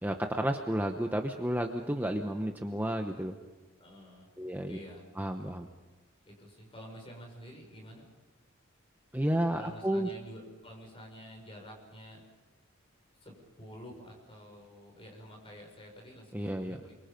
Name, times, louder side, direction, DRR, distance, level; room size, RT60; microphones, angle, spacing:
voice 1, 0.0-3.4 4.4-4.8 5.2-5.7 9.1-10.1 16.3-16.8, right 1 dB, 10° right, 4 dB, 0.9 m, -31 dB
voice 2, 3.8-4.3 4.6-5.1 6.2-8.1 9.6-12.2 13.2-17.0, equal, 25° left, 1 dB, 6.4 m, -49 dB
29.0 x 24.0 x 5.3 m, 1.2 s
head